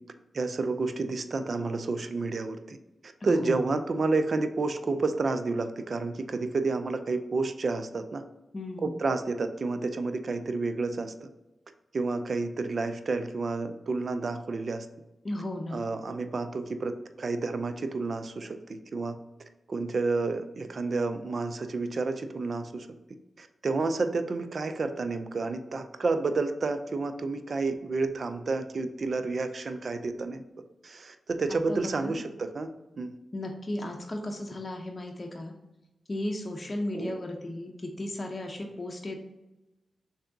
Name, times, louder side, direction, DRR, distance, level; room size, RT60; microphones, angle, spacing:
voice 1, 0.3-2.8 3.2-8.2 8.8-11.3 11.9-14.9 15.7-19.2 19.7-22.9 23.4-30.4 30.8-32.7 33.0-33.1 36.9-37.2, right 3 dB, 60° right, 9 dB, 0.4 m, -30 dB
voice 2, 3.2-3.6 8.5-9.0 15.2-15.8 31.5-32.2 33.3-35.5 36.1-39.2, left 1 dB, 40° left, 2 dB, 0.6 m, -35 dB
3.4 x 2.7 x 3.8 m, 1.0 s
cardioid pair, 45°, 0 cm